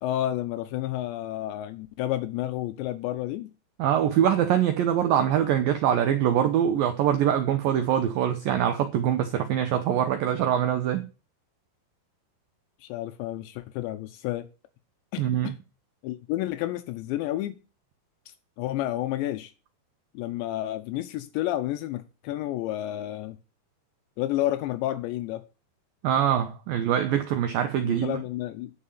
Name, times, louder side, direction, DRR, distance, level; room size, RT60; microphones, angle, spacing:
voice 1, 0.0-3.5 12.8-14.5 15.1-15.6 16.0-17.5 18.6-19.5 20.1-23.4 24.2-25.4 27.8-28.7, left 14 dB, 80° left, 3.0 m, -30 dB
voice 2, 3.8-11.0 15.2-15.5 26.0-28.2, right 10 dB, 80° right, 2.0 m, -24 dB
10.0 x 5.6 x 8.3 m
omnidirectional pair, 5.2 m